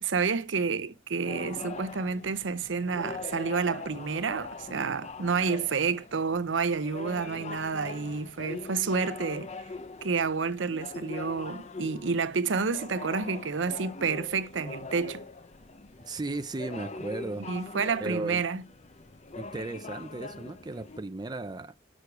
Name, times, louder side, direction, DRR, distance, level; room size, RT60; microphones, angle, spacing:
voice 1, 0.0-9.5 10.0-15.2 17.4-18.6, right 5 dB, 85° right, 0.7 m, -29 dB
sound 1, 1.2-21.0, left 3 dB, 40° left, 0.7 m, -42 dB
voice 2, 16.0-17.7 18.0-18.4 19.4-21.7, right 2 dB, 25° right, 0.5 m, -36 dB
6.8 x 6.4 x 4.7 m
head